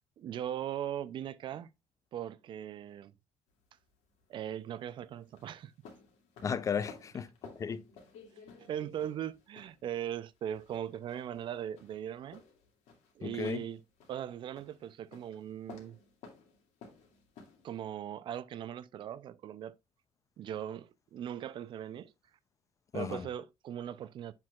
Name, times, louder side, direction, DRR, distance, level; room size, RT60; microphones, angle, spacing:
voice 1, 0.2-1.7 2.1-3.1 4.3-5.7 8.6-12.4 13.2-13.8 14.1-16.0 17.6-19.8 20.4-22.1 22.9-24.3, right 10 dB, 40° right, 0.4 m, -39 dB
sound 1, 3.5-17.9, left 5 dB, 75° left, 2.2 m, -56 dB
voice 2, 6.4-7.8 13.2-13.6 22.9-23.3, left 6 dB, 25° left, 0.4 m, -35 dB
7.4 x 6.0 x 2.3 m
cardioid pair, 170°, 13 cm